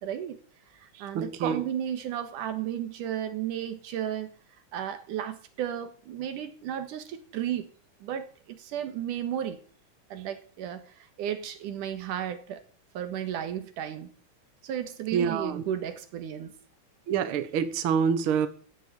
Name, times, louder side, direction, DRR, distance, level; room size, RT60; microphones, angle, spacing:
voice 1, 0.0-0.4 0.7-4.3 4.7-7.7 8.0-9.6 10.1-12.6 12.9-14.1 14.6-16.5, right 10 dB, 85° right, 9 dB, 3.0 m, -34 dB
voice 2, 0.9-1.6 15.1-15.6 17.1-18.5, right 7 dB, 55° right, 11 dB, 1.7 m, -27 dB
16.5 x 6.4 x 8.4 m, 0.43 s
omnidirectional pair, 3.6 m